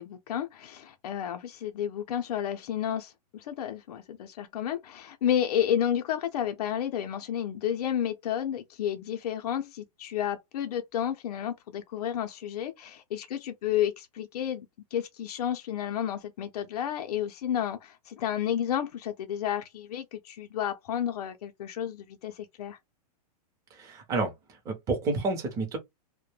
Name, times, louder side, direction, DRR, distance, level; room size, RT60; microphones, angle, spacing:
voice 1, 0.0-14.7 14.9-22.8, left 10 dB, 70° left, 0.5 m, -31 dB
voice 2, 23.7-24.3 24.6-25.8, right 3 dB, 15° right, 0.6 m, -29 dB
2.1 x 2.1 x 3.1 m
supercardioid pair, 160°, 20 cm